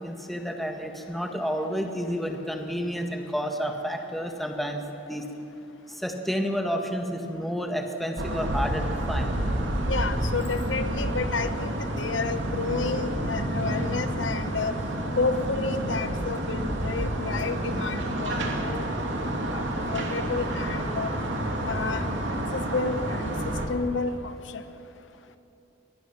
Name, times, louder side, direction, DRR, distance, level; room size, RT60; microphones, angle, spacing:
voice 1, 0.0-4.8 5.1-5.2 5.9-9.3, equal, ahead, 3 dB, 1.6 m, -30 dB
sound 1, 8.2-23.7, right 1 dB, 80° right, 2.6 m, -29 dB
voice 2, 9.9-14.7 15.2-18.8 19.4-19.7 19.9-21.1 21.6-22.1 22.5-24.6, left 4 dB, 85° left, 10 dB, 1.0 m, -30 dB
24.0 x 20.0 x 6.1 m, 2.8 s
head